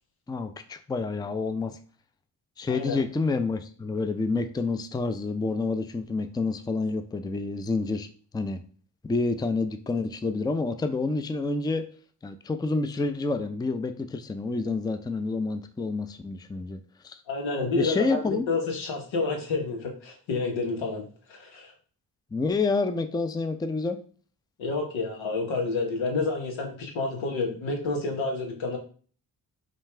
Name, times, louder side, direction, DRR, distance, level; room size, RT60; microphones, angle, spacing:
voice 1, 0.3-1.8 2.6-8.1 8.3-8.6 9.1-11.8 12.2-17.2 17.8-18.4 22.3-24.0, left 3 dB, 10° left, 9 dB, 0.4 m, -28 dB
voice 2, 2.7-3.0 17.3-21.7 24.6-28.8, left 3 dB, 85° left, 2 dB, 1.1 m, -29 dB
5.2 x 2.4 x 3.3 m, 0.42 s
supercardioid pair, 50°, 45 cm